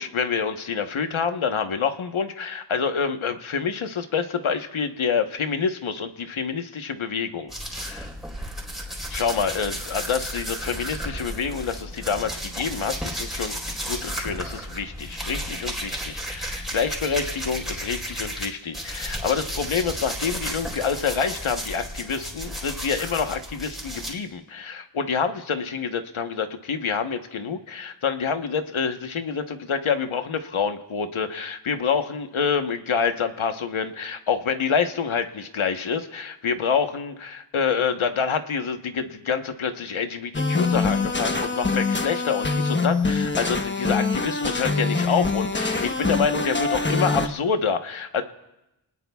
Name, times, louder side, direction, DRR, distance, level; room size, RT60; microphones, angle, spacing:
voice 1, 0.0-8.1 9.1-48.2, left 6 dB, 85° left, 7 dB, 1.2 m, -27 dB
sound 1, 7.5-18.5 18.7-24.1, equal, ahead, 3.8 m, -33 dB
sound 2, 40.3-47.3, left 3 dB, 25° left, 1.1 m, -24 dB
29.0 x 19.5 x 2.3 m, 0.93 s
wide cardioid pair, 95°, 47 cm